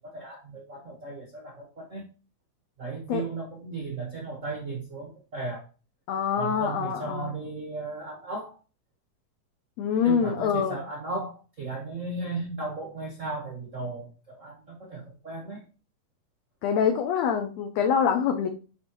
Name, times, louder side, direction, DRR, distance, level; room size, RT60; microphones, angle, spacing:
voice 1, 0.0-2.0 2.8-5.6 6.4-8.6 10.0-15.6, right 3 dB, 80° right, 0 dB, 0.6 m, -36 dB
voice 2, 6.1-7.3 9.8-10.8 16.6-18.5, left 7 dB, 75° left, 5 dB, 1.7 m, -25 dB
10.5 x 3.9 x 3.0 m, 0.36 s
omnidirectional pair, 3.6 m